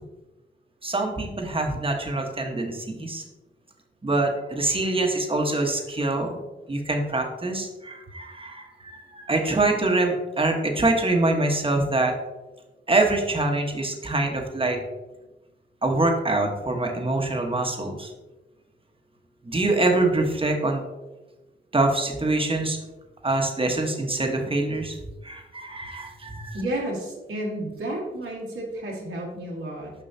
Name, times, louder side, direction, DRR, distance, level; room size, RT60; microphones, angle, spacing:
voice 1, 0.8-3.2 4.0-6.4 6.7-12.1 12.9-14.8 15.8-18.1 19.4-20.8 21.7-22.8 23.2-25.0 25.2-26.6, right 2 dB, 25° right, 2 dB, 1.3 m, -24 dB
voice 2, 26.5-29.9, right 1 dB, 75° right, -3 dB, 1.8 m, -31 dB
6.7 x 5.3 x 2.8 m, 1.1 s
cardioid pair, 50°, 21 cm